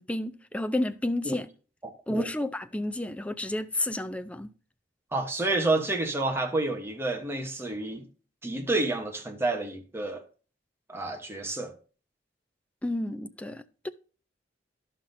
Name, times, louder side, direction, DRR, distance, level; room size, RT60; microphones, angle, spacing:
voice 1, 0.0-1.5 2.1-4.5 12.8-13.9, left 1 dB, 5° left, 0.4 m, -31 dB
voice 2, 1.8-2.3 5.1-8.1 8.4-10.2 10.9-11.7, right 2 dB, 15° right, 1.0 m, -29 dB
11.5 x 5.7 x 2.6 m
head